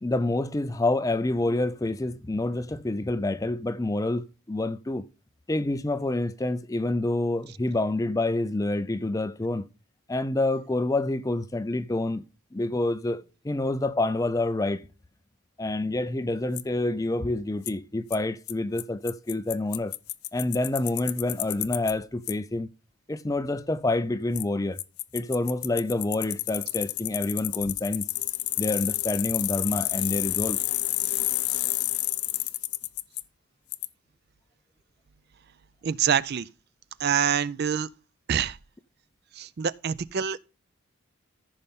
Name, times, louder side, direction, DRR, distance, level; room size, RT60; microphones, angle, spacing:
voice 1, 0.0-5.0 5.5-9.7 10.1-12.3 12.5-14.8 15.6-20.0 20.3-22.7 23.1-24.8 25.1-28.1 28.6-30.6, left 2 dB, 15° left, 0.4 m, -27 dB
Bicycle, 16.6-16.7 17.7-17.8 18.1-18.2 18.5-18.6 18.8-18.9 19.1-21.9 22.3-22.4 24.3-24.4 24.8-33.2 33.7-33.9, left 17 dB, 75° left, 0.6 m, -29 dB
voice 2, 35.8-36.5 37.0-37.9 38.3-38.6 39.3-40.4, right 8 dB, 45° right, 0.4 m, -26 dB
14.5 x 5.5 x 3.6 m
head